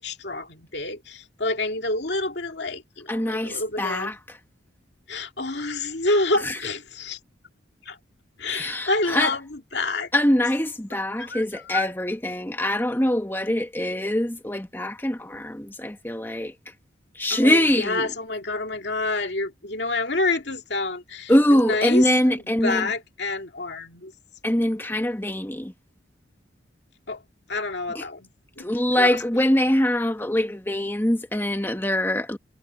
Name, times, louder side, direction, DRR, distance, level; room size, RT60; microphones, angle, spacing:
voice 1, 0.0-4.1 5.1-7.2 7.9-8.0 8.4-10.1 11.2-11.9 17.3-22.4 22.6-24.1 27.1-27.2 27.5-28.3 28.6-28.7 28.9-29.2, left 2 dB, 60° left, 2.4 m, -28 dB
voice 2, 3.1-4.1 6.4-6.5 8.5-9.3 10.1-16.5 17.1-18.1 21.3-22.9 24.4-25.7 27.9-28.0 28.6-32.4, left 1 dB, 10° left, 1.3 m, -23 dB
head